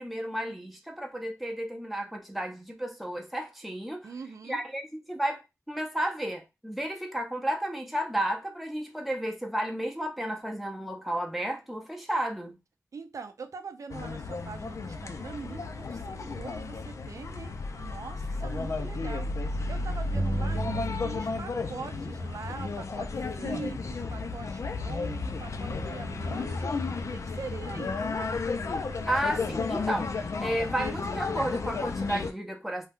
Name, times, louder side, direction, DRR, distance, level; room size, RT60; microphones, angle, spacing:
voice 1, 0.0-4.0 4.5-4.8 5.1-5.4 5.7-12.6 29.1-32.9, right 1 dB, ahead, 0.6 m, -32 dB
voice 2, 4.0-4.6 12.9-19.3 19.7-23.1 23.4-26.7 27.0-28.3, right 5 dB, 70° right, 0.5 m, -42 dB
sound 1, 13.9-32.3, left 3 dB, 65° left, 0.4 m, -33 dB
sound 2, 20.1-21.6 21.9-23.7, right 1 dB, 30° right, 0.8 m, -36 dB
2.7 x 2.3 x 3.5 m
wide cardioid pair, 100°, 6 cm